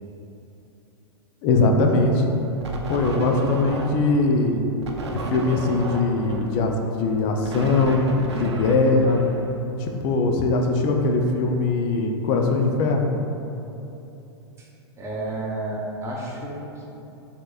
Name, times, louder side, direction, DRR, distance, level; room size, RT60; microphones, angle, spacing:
voice 1, 1.4-2.2 2.9-4.6 5.1-6.7 7.0-8.0 8.4-9.2 9.8-13.1, left 3 dB, 45° left, 3 dB, 0.5 m, -21 dB
sound 1, 2.6-4.2 4.8-9.9, right 2 dB, 80° right, 0.5 m, -32 dB
voice 2, 15.0-16.9, right 2 dB, 20° right, -3 dB, 0.8 m, -31 dB
6.0 x 2.8 x 2.4 m, 2.9 s
hypercardioid pair, 110°, 14 cm